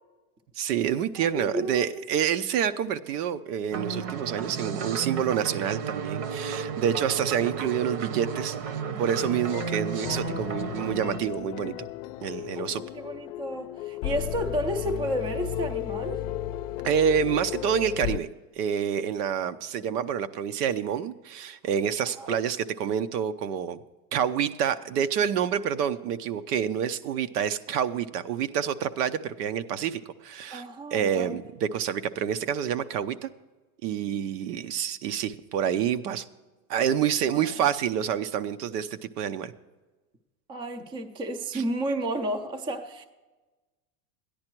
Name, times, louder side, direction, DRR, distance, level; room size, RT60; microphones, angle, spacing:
voice 1, 0.6-8.7 9.0-11.7 12.2-12.8 16.8-18.3 18.6-23.8 24.1-30.6 30.9-33.3 33.8-36.2 36.7-39.5 41.5-41.6, right 8 dB, 85° right, 0.8 m, -28 dB
voice 2, 1.2-2.1 10.1-10.7 12.6-16.3 22.2-22.4 30.5-31.4 37.3-37.6 40.5-43.1, right 1 dB, 10° right, 0.4 m, -32 dB
sound 1, 3.7-11.2, right 6 dB, 60° right, 1.0 m, -33 dB
sound 2, 9.2-18.2, left 14 dB, 70° left, 0.6 m, -34 dB
13.5 x 10.5 x 4.5 m
supercardioid pair, 155°, 45 cm